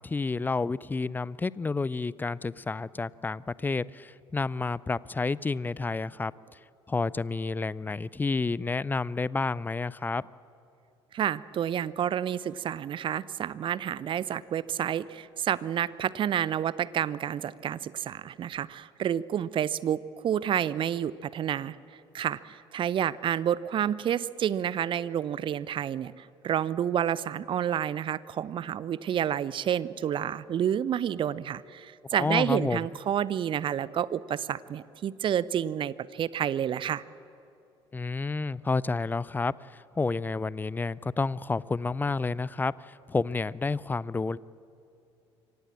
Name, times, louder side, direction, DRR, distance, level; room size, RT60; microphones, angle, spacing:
voice 1, 0.0-6.6 6.9-10.2 32.2-32.9 37.9-44.4, left 3 dB, 15° left, 22 dB, 0.4 m, -30 dB
voice 2, 11.1-21.8 22.1-37.0, right 9 dB, 40° right, 19 dB, 0.6 m, -29 dB
25.0 x 17.5 x 7.4 m, 2.7 s
figure-of-eight pair, 55°, 14 cm